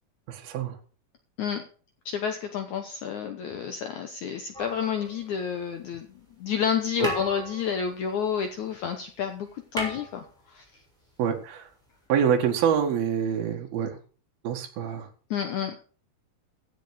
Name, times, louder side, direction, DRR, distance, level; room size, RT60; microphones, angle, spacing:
voice 1, 0.3-0.8 7.0-7.1 11.2-11.7 12.1-14.0 14.4-15.1, right 8 dB, 75° right, 2 dB, 3.5 m, -26 dB
voice 2, 2.1-6.1 6.4-10.7 15.3-15.8, left 7 dB, 65° left, 7 dB, 2.0 m, -30 dB
sound 1, 4.5-5.7 6.6-6.7 7.0-8.9 9.1-9.2 9.5-10.9 12.0-12.1, right 1 dB, ahead, 6.7 m, -37 dB
15.5 x 8.3 x 4.9 m, 0.39 s
omnidirectional pair, 4.4 m